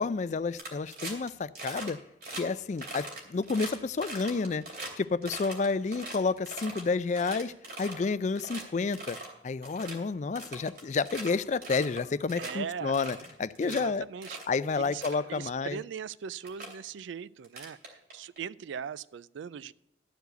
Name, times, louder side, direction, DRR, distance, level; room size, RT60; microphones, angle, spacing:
voice 1, 0.0-2.0 2.4-4.6 5.0-7.5 7.8-9.2 9.4-14.0 14.5-15.8, left 4 dB, 40° left, 16 dB, 0.4 m, -30 dB
sound 1, 0.5-1.3 1.5-1.9 2.2-2.4 2.8-4.9 5.2-6.8 7.1-8.0 8.3-8.6 8.9-9.3 9.6-9.9 10.3-11.3 11.6-12.0 12.3-12.5 12.9-13.8 14.2-14.5 14.8-15.2 16.0-16.1 16.4-16.7 17.4-18.4, right 2 dB, 55° right, 2.8 m, -41 dB
voice 2, 12.4-12.9 13.6-14.4 14.8-15.0 15.3-19.7, right 7 dB, 85° right, 20 dB, 0.4 m, -39 dB
12.5 x 4.8 x 7.9 m, 0.80 s
head